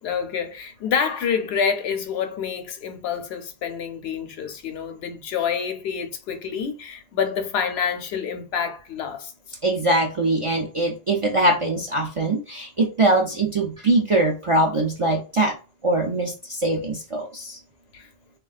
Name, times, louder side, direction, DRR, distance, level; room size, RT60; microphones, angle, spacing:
voice 1, 0.0-9.3 17.9-18.1, left 7 dB, 75° left, 0.8 m, -27 dB
voice 2, 9.6-15.5 15.8-17.6, right 2 dB, 50° right, 0.4 m, -22 dB
3.3 x 2.2 x 2.3 m
omnidirectional pair, 1.1 m